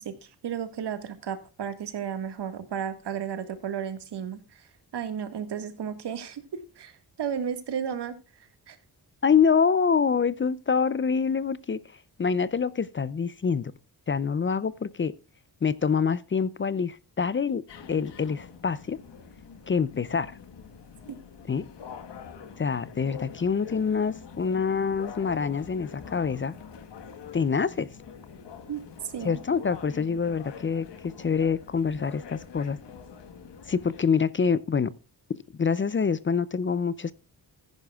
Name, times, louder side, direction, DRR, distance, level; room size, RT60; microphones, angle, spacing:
voice 1, 0.0-6.4 6.8-8.8 28.7-29.4, right 8 dB, 75° right, 1.8 m, -34 dB
voice 2, 9.2-13.7 14.1-15.1 15.6-17.6 17.9-19.0 19.7-20.4 21.5-21.7 22.6-26.5 27.3-27.9 29.2-32.8 33.7-34.9 35.6-37.1, left 6 dB, 30° left, 0.5 m, -26 dB
sound 1, 17.7-34.0, left 6 dB, 90° left, 1.5 m, -45 dB
15.0 x 10.5 x 2.3 m
wide cardioid pair, 140°, 41 cm